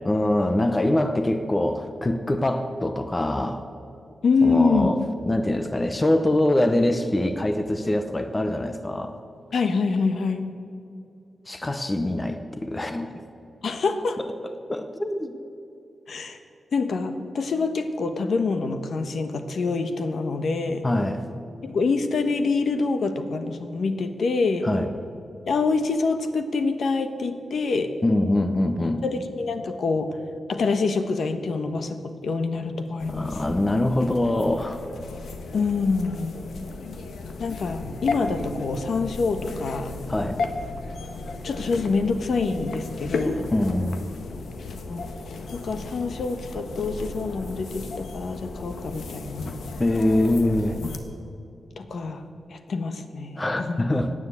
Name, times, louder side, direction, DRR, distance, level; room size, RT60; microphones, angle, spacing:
voice 1, 0.0-3.6 4.4-9.2 11.5-13.2 14.2-14.3 14.7-15.3 20.8-21.2 24.6-24.9 28.0-29.0 33.1-34.8 40.1-40.4 43.5-44.1 49.8-50.8 53.4-54.1, left 1 dB, 15° left, 8 dB, 0.7 m, -24 dB
voice 2, 4.2-4.9 9.5-10.4 13.6-14.2 16.1-16.4 16.7-20.8 21.6-24.7 25.5-27.9 29.0-30.2 30.5-33.4 35.5-36.3 37.4-39.9 41.4-43.5 44.9-45.0 45.5-49.6 51.8-52.2 52.5-53.8, left 4 dB, 60° left, 8 dB, 1.1 m, -26 dB
sound 1, 33.0-51.0, left 3 dB, 85° left, 1.4 m, -35 dB
17.0 x 9.8 x 8.2 m, 2.6 s
wide cardioid pair, 165°, 0 cm